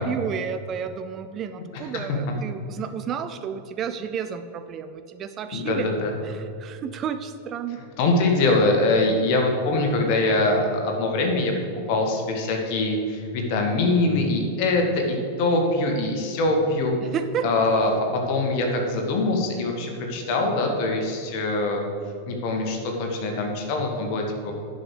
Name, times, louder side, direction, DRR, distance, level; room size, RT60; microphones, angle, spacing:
voice 1, 0.0-5.9 6.2-7.8 17.0-17.5, right 7 dB, 30° right, 9 dB, 0.5 m, -31 dB
voice 2, 5.5-6.1 8.0-17.0 17.4-21.8 22.3-24.5, left 2 dB, 45° left, 2 dB, 1.8 m, -23 dB
10.5 x 5.5 x 6.8 m, 2.4 s
figure-of-eight pair, 90°, 0 cm